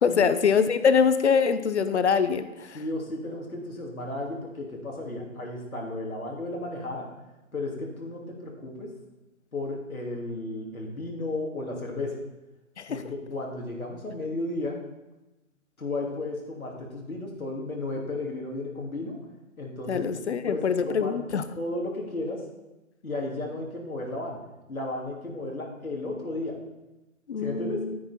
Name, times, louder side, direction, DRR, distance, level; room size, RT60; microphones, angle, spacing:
voice 1, 0.0-2.8 12.8-13.0 19.9-21.5 27.3-28.0, left 6 dB, 55° left, 12 dB, 0.8 m, -24 dB
voice 2, 2.7-7.1 7.5-8.9 9.5-12.2 12.9-14.8 15.8-19.2 19.6-21.2 21.6-22.4 23.0-24.4 24.7-26.6 27.4-27.8, left 2 dB, 90° left, -1 dB, 2.8 m, -34 dB
9.8 x 9.5 x 4.3 m, 1.0 s
figure-of-eight pair, 145°, 41 cm